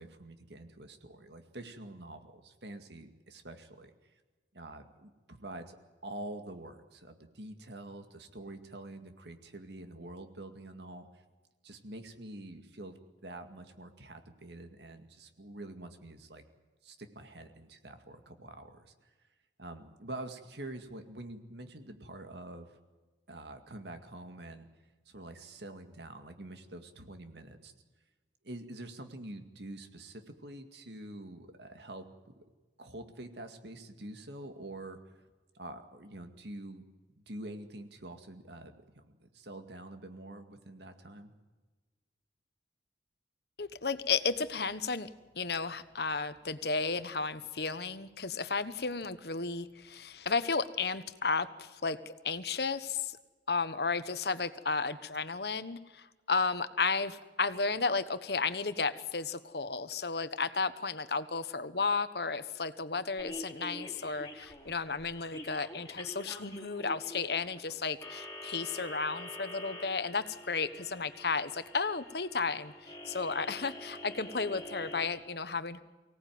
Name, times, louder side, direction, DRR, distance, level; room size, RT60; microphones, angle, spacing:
voice 1, 0.0-3.9 4.5-5.8 6.0-11.1 11.6-16.4 16.8-18.9 19.6-22.7 23.3-24.7 25.1-27.7 28.4-32.4 32.8-35.0 35.5-36.8 37.2-41.3, right 1 dB, 70° right, 7 dB, 2.1 m, -46 dB
voice 2, 43.6-45.1 45.3-52.0 52.2-53.2 53.5-75.8, left 4 dB, 60° left, 12 dB, 1.2 m, -33 dB
sound 1, 63.2-75.1, left 1 dB, 20° left, 3.7 m, -46 dB
24.5 x 18.0 x 9.4 m, 1.3 s
head